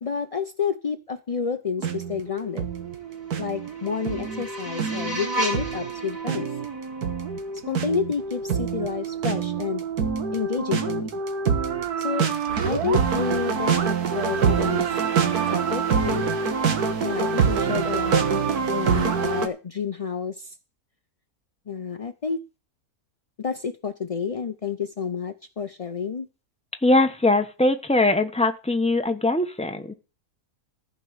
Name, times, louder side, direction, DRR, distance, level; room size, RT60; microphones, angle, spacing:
voice 1, 0.0-2.7 3.4-6.6 7.7-9.8 10.3-11.2 12.0-12.3 12.6-16.3 17.0-18.2 18.7-20.5 21.7-22.4 23.4-26.3, left 6 dB, 50° left, 8 dB, 0.4 m, -30 dB
sound 1, 1.8-19.5, right 6 dB, 85° right, 1.8 m, -26 dB
sound 2, 3.1-8.1, right 1 dB, 25° right, 5.5 m, -34 dB
voice 2, 26.8-29.9, left 2 dB, 5° left, 6 dB, 0.9 m, -21 dB
14.5 x 5.3 x 8.0 m, 0.32 s
omnidirectional pair, 1.6 m